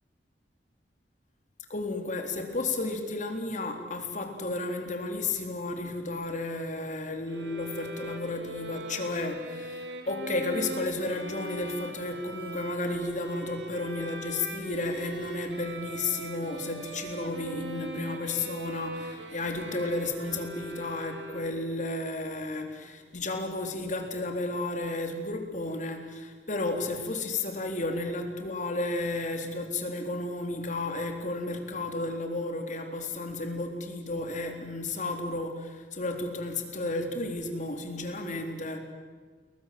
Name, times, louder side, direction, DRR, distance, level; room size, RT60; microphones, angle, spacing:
voice 1, 1.7-38.8, left 2 dB, 45° left, 5 dB, 3.9 m, -33 dB
Bowed string instrument, 7.3-21.8, right 1 dB, 90° right, 3.5 m, -41 dB
29.5 x 22.0 x 7.9 m, 1.5 s
head